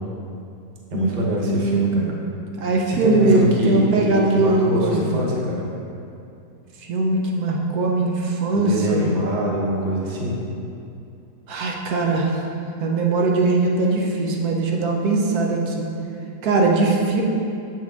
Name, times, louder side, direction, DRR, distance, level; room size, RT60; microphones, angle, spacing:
voice 1, 0.9-2.1 2.9-5.6 8.5-10.4, equal, 40° right, -2 dB, 0.7 m, -24 dB
voice 2, 1.4-2.1 2.6-5.2 6.9-9.1 11.5-12.4 12.8-15.9 16.4-17.2, right 3 dB, 75° right, -1 dB, 1.2 m, -20 dB
7.6 x 4.5 x 3.5 m, 2.6 s
omnidirectional pair, 1.7 m